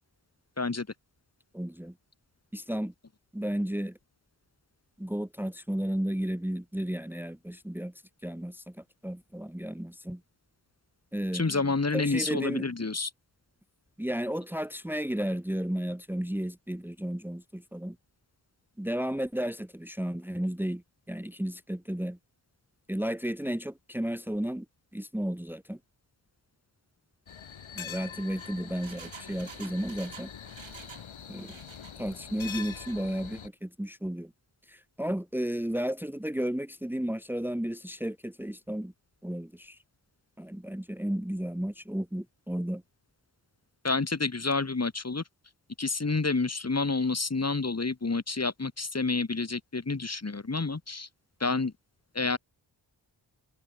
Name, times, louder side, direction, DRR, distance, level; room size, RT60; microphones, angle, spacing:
voice 1, 1.5-1.9 2.5-2.9 3.3-4.0 5.0-7.9 8.2-10.2 11.1-11.5 11.9-12.6 14.0-18.0 18.8-22.2 22.9-24.7 24.9-25.8 27.8-30.3 31.3-31.6 32.0-34.3 34.7-38.9 39.2-39.8 40.4-42.8, equal, 5° right, 1.8 m, -33 dB
voice 2, 11.3-13.1 43.8-45.2 45.8-51.1 51.4-51.7 52.1-52.4, left 3 dB, 35° left, 3.0 m, -29 dB
sound 1, 27.3-33.5, left 8 dB, 80° left, 4.9 m, -44 dB
Engine, 28.1-31.1 31.3-32.0 32.4-33.0 33.3-33.4, right 7 dB, 75° right, 5.6 m, -49 dB
cardioid pair, 50°, 47 cm